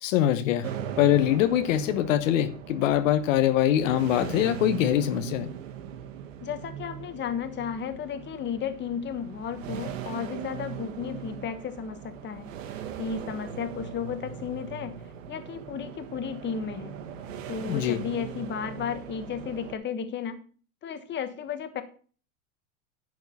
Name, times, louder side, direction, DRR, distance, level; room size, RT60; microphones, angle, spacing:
voice 1, 0.0-5.5 17.7-18.0, left 11 dB, 80° left, 1.0 m, -23 dB
sound 1, 0.6-19.7, right 9 dB, 85° right, 1.4 m, -39 dB
voice 2, 6.4-12.5 13.0-14.9 15.3-16.9 17.5-20.4 20.8-21.8, left 7 dB, 30° left, 1.3 m, -34 dB
10.5 x 4.4 x 6.9 m
supercardioid pair, 125°, 38 cm